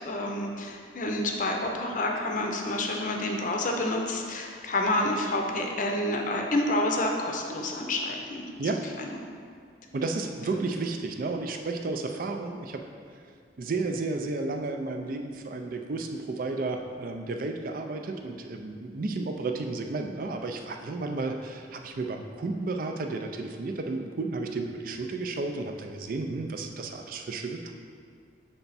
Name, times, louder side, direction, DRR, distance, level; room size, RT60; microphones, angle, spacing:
voice 1, 0.1-8.4 9.0-9.1, left 1 dB, 45° left, 2 dB, 0.6 m, -28 dB
voice 2, 9.9-12.8 13.6-27.7, right 3 dB, 50° right, 4 dB, 0.4 m, -32 dB
6.9 x 3.4 x 4.1 m, 2.1 s
head